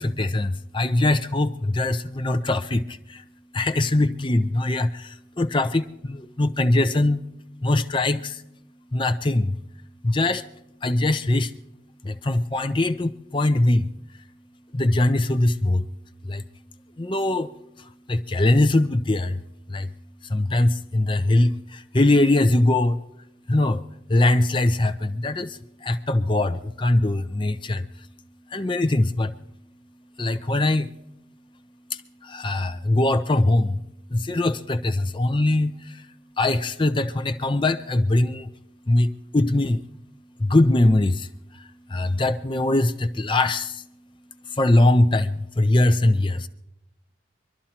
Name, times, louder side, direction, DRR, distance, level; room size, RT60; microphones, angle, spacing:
voice 1, 0.0-2.8 3.5-4.9 5.4-7.2 7.6-8.3 8.9-9.5 10.0-10.4 10.8-11.5 12.1-13.8 14.8-15.8 16.3-16.4 17.0-17.5 18.1-19.4 19.7-19.9 20.3-21.5 21.9-23.0 23.5-23.8 24.1-25.5 25.8-27.8 28.5-29.3 30.2-30.9 32.3-33.8 34.1-35.7 36.4-38.5 38.9-39.1 39.3-39.8 40.4-41.2 41.9-43.7 44.6-46.5, left 2 dB, 25° left, 8 dB, 0.6 m, -21 dB
24.5 x 12.5 x 2.9 m, 0.82 s
head